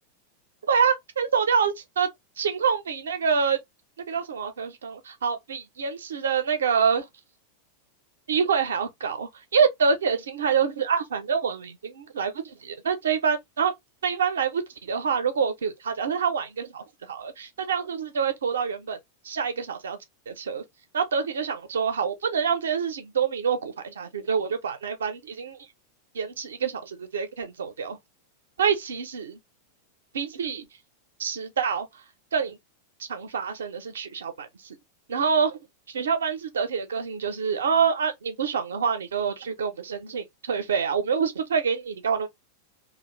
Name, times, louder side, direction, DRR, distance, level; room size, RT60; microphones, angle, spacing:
voice 1, 0.7-2.1 2.4-3.6 4.1-7.0 8.3-13.7 14.0-19.0 19.2-20.0 20.3-20.6 20.9-25.6 26.1-28.0 28.6-29.4 30.1-30.7 31.2-31.9 32.3-32.6 33.1-34.8 35.1-35.6 35.9-42.3, right 6 dB, 65° right, 0.6 m, -26 dB
2.8 x 2.5 x 2.9 m
figure-of-eight pair, 90°, 0 cm